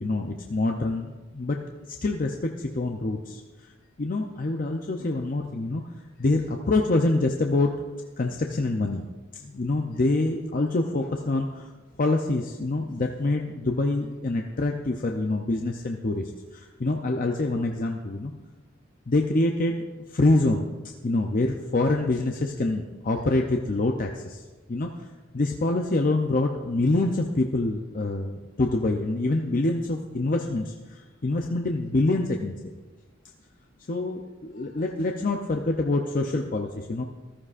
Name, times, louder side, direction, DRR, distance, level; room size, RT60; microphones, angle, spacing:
voice 1, 0.0-1.6 1.9-3.7 4.0-5.8 6.2-9.1 9.3-11.7 12.0-18.3 19.1-19.8 20.1-24.4 24.7-25.1 25.3-32.7 33.9-37.0, left 2 dB, 40° left, 3 dB, 0.6 m, -26 dB
14.5 x 13.5 x 2.5 m, 1.3 s
head